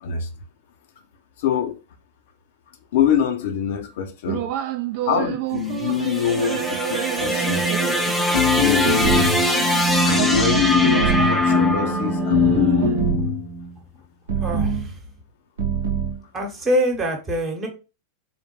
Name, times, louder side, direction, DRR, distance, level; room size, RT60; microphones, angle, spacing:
voice 1, 1.4-1.8 2.9-4.5 5.0-7.6 8.6-9.5 10.0-12.9, left 8 dB, 55° left, 0.6 m, -25 dB
sound 1, 4.3-13.2, right 12 dB, 45° right, 0.4 m, -29 dB
sound 2, 5.6-13.9, left 1 dB, 5° left, 0.6 m, -22 dB
sound 3, 8.3-9.5 10.3-11.4 12.3-13.4 14.3-14.9 15.6-16.2, left 2 dB, 65° right, 0.9 m, -22 dB
voice 2, 14.4-14.9 16.3-17.7, equal, 25° right, 1.1 m, -24 dB
3.6 x 2.2 x 3.1 m
figure-of-eight pair, 90°, 0 cm